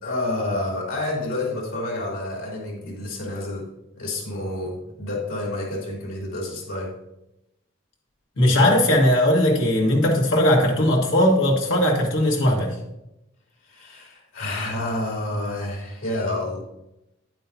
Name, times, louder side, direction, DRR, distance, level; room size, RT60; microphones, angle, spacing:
voice 1, 0.0-3.7 4.0-6.9 13.6-16.6, left 2 dB, 90° left, -2 dB, 3.3 m, -29 dB
voice 2, 8.4-12.8, left 1 dB, 70° left, 0 dB, 1.8 m, -19 dB
9.6 x 8.9 x 2.8 m, 0.88 s
head